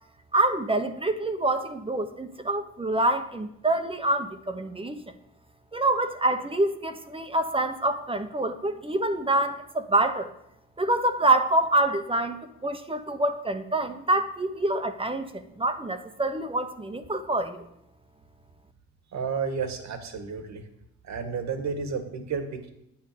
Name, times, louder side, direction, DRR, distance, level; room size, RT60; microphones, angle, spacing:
voice 1, 0.3-5.0 5.7-10.3 10.8-17.6, right 2 dB, 20° right, 7 dB, 1.1 m, -26 dB
voice 2, 19.1-20.6 21.0-22.7, right 5 dB, 65° right, 7 dB, 1.9 m, -31 dB
9.3 x 9.2 x 6.9 m, 0.78 s
cardioid pair, 90°, 30 cm